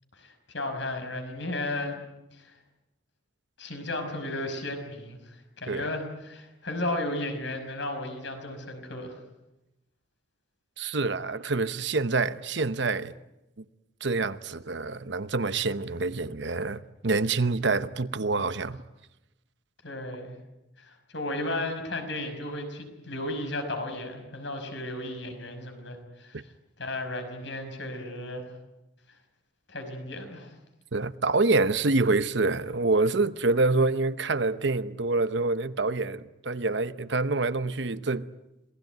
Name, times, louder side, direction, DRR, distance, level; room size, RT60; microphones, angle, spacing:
voice 1, 0.2-2.0 2.3-2.5 3.6-9.2 19.8-20.4 20.8-26.4 26.8-28.5 29.7-30.5, left 1 dB, 65° left, 5.5 m, -34 dB
voice 2, 10.8-13.1 14.0-18.8 30.9-38.3, right 3 dB, 65° right, 0.9 m, -26 dB
27.0 x 19.0 x 9.4 m
head